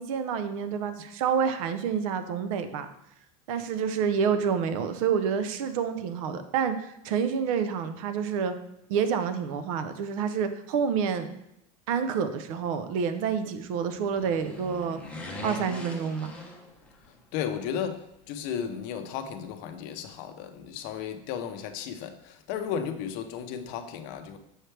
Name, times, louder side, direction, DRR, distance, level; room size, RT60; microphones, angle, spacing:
voice 1, 0.0-2.9 3.5-8.5 8.9-11.3 11.9-15.0 15.4-16.3, right 7 dB, 70° right, 10 dB, 0.6 m, -28 dB
sound 1, 13.8-17.2 17.5-17.6, left 1 dB, 5° left, 0.7 m, -41 dB
voice 2, 17.3-24.4, left 8 dB, 50° left, 7 dB, 0.6 m, -34 dB
6.4 x 4.4 x 3.3 m, 0.81 s
supercardioid pair, 155°, 18 cm